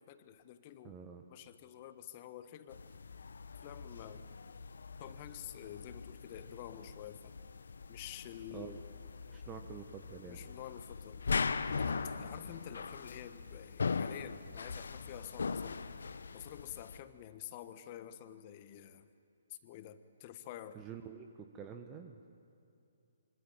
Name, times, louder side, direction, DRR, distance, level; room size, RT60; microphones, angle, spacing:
voice 1, 0.1-1.0 1.3-2.8 3.6-4.2 5.0-7.3 7.9-8.7 9.3-9.4 10.3-11.2 11.8-15.9 16.3-19.1 19.5-20.8, left 11 dB, 35° left, 11 dB, 1.4 m, -49 dB
voice 2, 0.8-1.2 8.5-8.8 9.3-10.5 20.7-22.2, right 7 dB, 20° right, 6 dB, 1.3 m, -48 dB
sound 1, 2.7-17.0, left 5 dB, 65° left, 1.0 m, -40 dB
25.5 x 25.0 x 9.0 m, 2.7 s
figure-of-eight pair, 130°, 0 cm